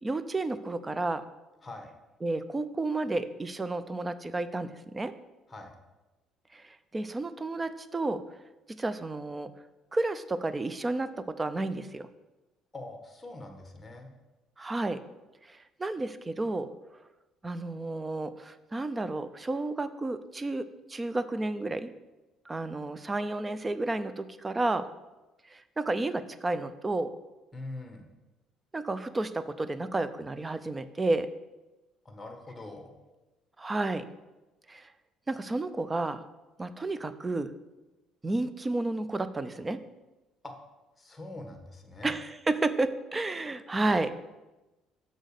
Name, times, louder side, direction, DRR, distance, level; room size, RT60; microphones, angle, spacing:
voice 1, 0.0-1.2 2.2-5.1 6.5-8.2 8.7-9.5 9.9-12.1 14.6-15.0 15.5-16.7 17.4-21.9 22.5-24.9 25.5-27.1 28.7-31.3 33.6-34.1 34.7-34.9 35.3-36.2 36.6-37.5 38.2-39.8 42.0-44.1, right 2 dB, 20° right, 13 dB, 0.5 m, -31 dB
voice 2, 12.7-14.1 27.5-28.1 32.0-32.9 40.4-40.5 41.0-42.1, left 2 dB, 15° left, 4 dB, 1.4 m, -43 dB
6.4 x 5.1 x 6.5 m, 1.1 s
cardioid pair, 100°, 0 cm